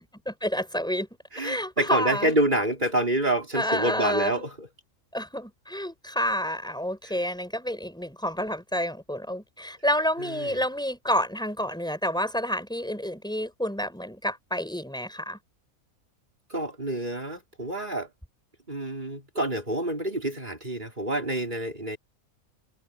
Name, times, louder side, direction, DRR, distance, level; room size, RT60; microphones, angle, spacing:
voice 1, 0.3-1.1 1.4-2.3 3.5-4.4 5.1-15.4, equal, 5° left, 6.0 m, -29 dB
voice 2, 1.3-4.7 7.0-7.1 10.2-10.6 16.5-18.1 18.7-22.0, right 1 dB, 35° right, 4.7 m, -27 dB
omnidirectional pair, 1.4 m